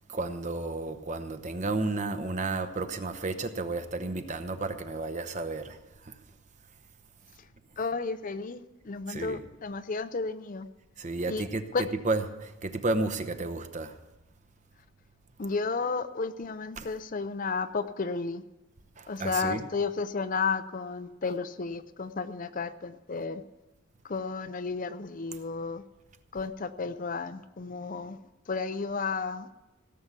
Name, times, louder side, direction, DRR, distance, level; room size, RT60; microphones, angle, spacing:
voice 1, 0.1-6.2 9.1-9.4 11.0-11.7 12.0-14.0 16.8-16.9 19.0-19.6, right 3 dB, 35° right, 0.8 m, -32 dB
voice 2, 7.8-10.7 11.3-11.4 11.7-11.8 15.4-18.4 19.1-23.4 24.0-25.8 26.3-28.2 28.5-29.5, left 4 dB, 40° left, 0.5 m, -32 dB
17.0 x 7.0 x 8.2 m
head